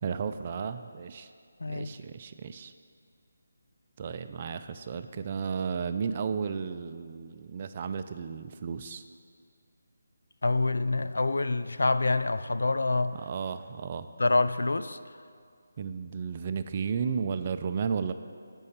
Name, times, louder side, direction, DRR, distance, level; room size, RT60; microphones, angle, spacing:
voice 1, 0.0-1.3 1.7-2.7 4.0-9.0 13.1-14.1 15.8-18.1, right 6 dB, 35° right, 10 dB, 0.3 m, -33 dB
voice 2, 10.4-13.2 14.2-15.0, left 3 dB, 80° left, 12 dB, 0.3 m, -26 dB
6.5 x 5.4 x 7.1 m, 2.2 s
figure-of-eight pair, 165°, 0 cm